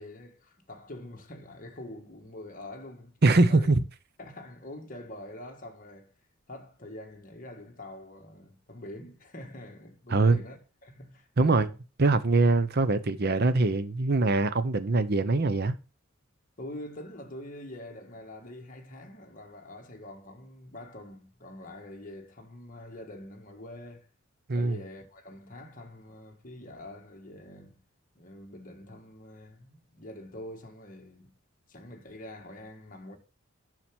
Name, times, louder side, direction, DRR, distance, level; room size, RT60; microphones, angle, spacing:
voice 1, 0.0-3.7 4.2-6.1 6.5-11.7 16.6-24.1 24.5-27.8 28.1-31.3 31.7-33.2, left 1 dB, 40° left, 1.6 m, -45 dB
voice 2, 3.2-3.8 10.1-10.4 11.4-11.7 12.0-15.7 24.5-24.8, right 3 dB, 50° right, 0.8 m, -23 dB
7.2 x 5.9 x 6.0 m
head